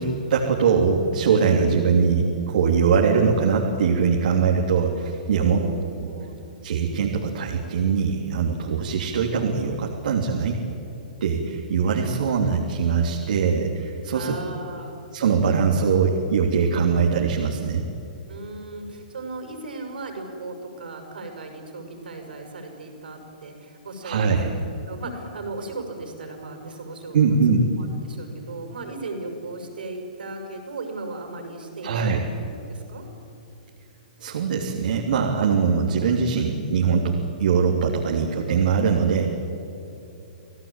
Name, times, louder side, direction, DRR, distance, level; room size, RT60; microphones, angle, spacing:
voice 1, 0.0-5.6 6.6-10.5 11.2-14.3 15.1-17.8 24.0-24.5 27.1-27.7 31.8-32.2 34.2-39.3, right 5 dB, 70° right, 0 dB, 3.2 m, -22 dB
voice 2, 5.4-6.4 14.1-15.0 18.3-24.6 24.9-27.4 27.8-32.4 32.7-33.1, right 3 dB, 90° right, 4 dB, 6.4 m, -36 dB
28.0 x 17.5 x 9.0 m, 2.8 s
hypercardioid pair, 140°, 5 cm